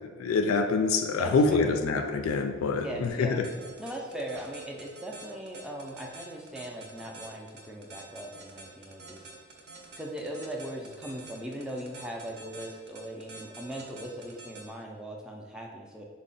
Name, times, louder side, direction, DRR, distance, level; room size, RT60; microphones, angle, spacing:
voice 1, 0.2-3.5, left 4 dB, 80° left, 6 dB, 0.3 m, -26 dB
voice 2, 1.2-1.7 2.7-3.5 3.8-9.3 10.0-16.0, right 1 dB, 5° right, -1 dB, 0.4 m, -39 dB
sound 1, 3.4-14.6, right 3 dB, 55° right, 0.6 m, -47 dB
3.7 x 2.0 x 3.9 m, 1.5 s
head